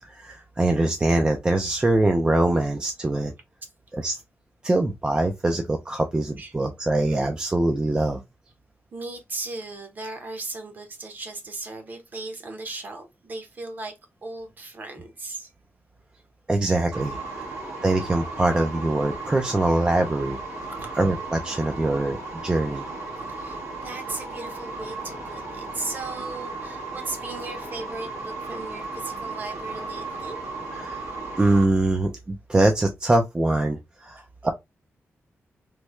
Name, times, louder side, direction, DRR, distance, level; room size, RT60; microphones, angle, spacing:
voice 1, 0.0-3.3 3.9-4.2 4.6-8.2 16.5-17.2 17.8-20.4 21.0-22.2 22.4-22.9 30.8-31.0 31.4-34.5, right 2 dB, 20° right, 0.4 m, -23 dB
voice 2, 8.9-13.9 14.2-15.5 20.8-20.9 21.6-21.7 23.3-30.4, right 2 dB, 40° right, 0.9 m, -37 dB
sound 1, 16.9-31.6, right 3 dB, 85° right, 1.4 m, -35 dB
3.1 x 2.2 x 3.0 m
wide cardioid pair, 135°, 5 cm